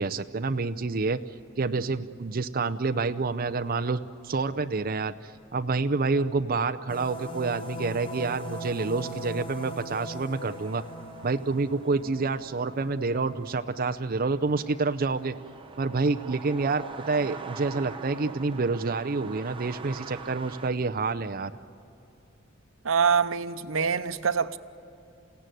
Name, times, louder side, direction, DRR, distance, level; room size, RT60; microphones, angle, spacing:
voice 1, 0.0-10.8 11.2-15.3 15.8-21.5, right 3 dB, 45° right, 0.6 m, -28 dB
sound 1, 6.9-13.9, right 1 dB, 25° left, 5.2 m, -40 dB
sound 2, 10.3-20.7, right 4 dB, 25° right, 1.0 m, -45 dB
voice 2, 22.8-24.6, right 6 dB, 85° right, 0.9 m, -25 dB
29.0 x 17.0 x 9.2 m
head